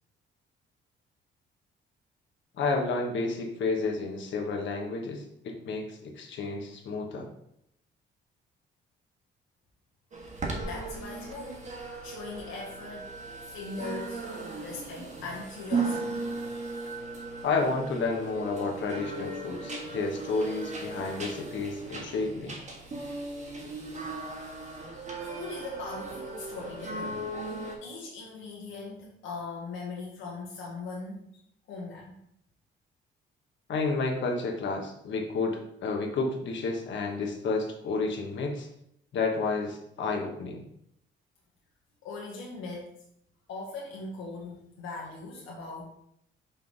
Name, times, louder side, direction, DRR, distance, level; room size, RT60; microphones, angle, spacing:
voice 1, 2.6-7.3 17.4-22.5 33.7-38.7 39.1-40.6, left 3 dB, 70° left, 2 dB, 1.3 m, -31 dB
sound 1, 10.1-27.8, right 3 dB, 35° right, 1.4 m, -37 dB
voice 2, 10.6-11.6 12.0-13.1 13.4-14.2 14.6-16.2 25.2-27.3 27.8-31.4 31.7-32.2 42.0-42.9 43.5-45.8, left 3 dB, 85° left, -3 dB, 1.2 m, -40 dB
5.6 x 3.6 x 4.6 m, 0.75 s
cardioid pair, 90°, 20 cm